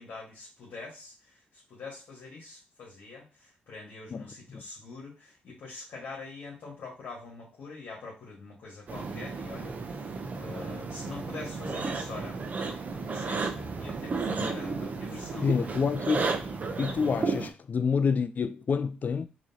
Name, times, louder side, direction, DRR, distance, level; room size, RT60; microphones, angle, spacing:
voice 1, 0.0-10.0 10.4-12.4 13.0-15.7, left 3 dB, 70° left, 1.5 m, -44 dB
sound 1, 8.9-17.5, right 4 dB, 45° right, 0.8 m, -33 dB
voice 2, 15.1-16.3 16.8-19.3, left 6 dB, 50° left, 0.4 m, -28 dB
3.8 x 3.1 x 2.8 m
supercardioid pair, 60°, 4 cm